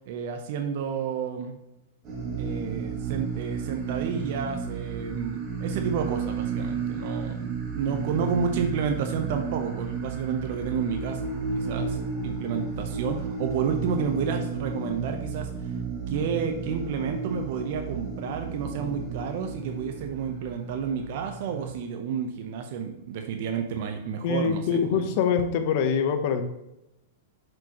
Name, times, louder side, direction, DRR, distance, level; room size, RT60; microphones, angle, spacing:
voice 1, 0.1-1.6 2.4-11.2 11.5-15.7 16.1-25.0, right 6 dB, 55° right, 5 dB, 0.8 m, -31 dB
sound 1, 2.1-21.7, right 5 dB, 35° right, 1.8 m, -33 dB
voice 2, 24.2-26.4, left 7 dB, 50° left, 7 dB, 0.9 m, -24 dB
7.5 x 5.0 x 3.0 m, 0.88 s
hypercardioid pair, 135°, 0 cm